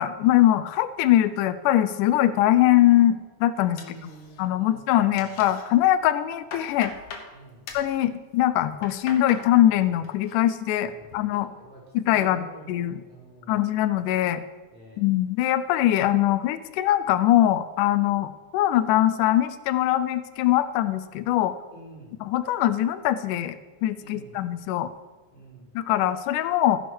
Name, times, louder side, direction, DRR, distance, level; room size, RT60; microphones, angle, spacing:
voice 1, 0.0-3.8 4.4-6.9 7.7-11.5 11.9-13.0 13.5-14.4 15.0-21.5 22.2-23.6 23.8-24.9 25.8-26.8, left 13 dB, 90° left, 13 dB, 2.1 m, -22 dB
voice 2, 3.7-5.3 7.3-7.7 10.8-13.8 14.7-15.0 21.7-22.1 24.0-24.4 25.3-25.7, right 2 dB, 5° left, -5 dB, 4.0 m, -48 dB
sound 1, 3.8-4.6 4.9-5.6 6.1-7.3 7.7-7.9 8.6-9.5 9.8-10.3 10.7-11.2, left 5 dB, 60° left, 2.1 m, -41 dB
14.5 x 6.4 x 6.2 m, 1.3 s
omnidirectional pair, 3.5 m